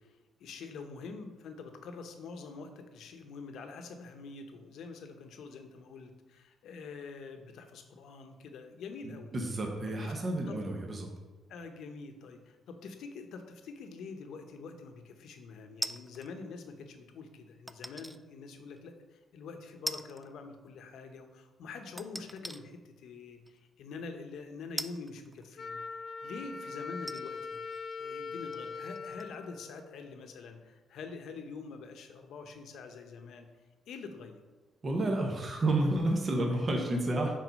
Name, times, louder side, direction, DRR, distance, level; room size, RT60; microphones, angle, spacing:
voice 1, 0.0-9.3 10.0-10.1 10.5-10.6 11.5-27.6 28.0-33.5 33.9-34.4 36.4-36.6 36.9-37.0, left 4 dB, 75° left, 5 dB, 0.8 m, -46 dB
voice 2, 9.3-11.1 34.8-37.3, right 1 dB, 35° right, 1 dB, 1.1 m, -30 dB
sound 1, 15.8-16.3 17.7-18.2 18.8-18.9 19.9-20.3 20.6-20.7 22.0-22.6 23.5-23.6 24.8-25.9 26.5-26.6 27.0-29.5 29.7-29.8, right 1 dB, 10° right, 0.3 m, -41 dB
Wind instrument woodwind instrument, 25.6-30.4, left 4 dB, 55° left, 0.5 m, -42 dB
6.2 x 4.2 x 5.2 m, 1.2 s
cardioid pair, 90°, 0 cm